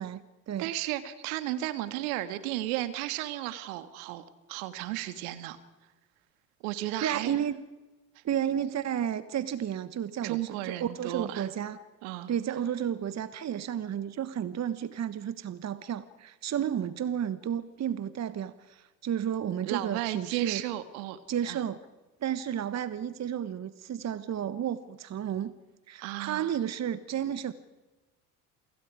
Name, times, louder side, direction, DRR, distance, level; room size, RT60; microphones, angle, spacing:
voice 1, 0.0-0.7 7.0-7.6 8.2-11.8 12.3-20.6 21.3-21.8 22.2-25.5 25.9-27.5, right 9 dB, 35° right, 14 dB, 1.3 m, -32 dB
voice 2, 0.6-5.6 6.6-7.3 10.2-11.5 12.0-12.3 19.6-21.6 26.0-26.5, right 15 dB, 65° right, 11 dB, 2.1 m, -34 dB
28.5 x 25.5 x 5.0 m, 1.1 s
hypercardioid pair, 65°, 46 cm